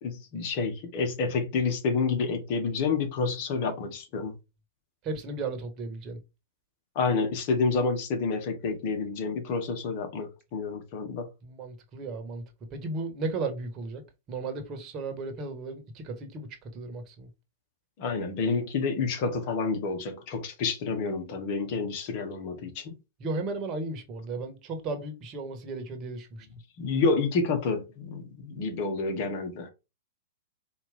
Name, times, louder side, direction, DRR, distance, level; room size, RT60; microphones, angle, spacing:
voice 1, 0.0-4.3 6.9-11.3 18.0-23.0 26.8-29.7, left 4 dB, 50° left, 1.5 m, -29 dB
voice 2, 5.0-6.2 11.4-12.4 12.7-14.0 14.3-17.3 23.2-26.5, right 3 dB, 35° right, 1.3 m, -35 dB
4.6 x 2.8 x 3.5 m
hypercardioid pair, 115°, 0 cm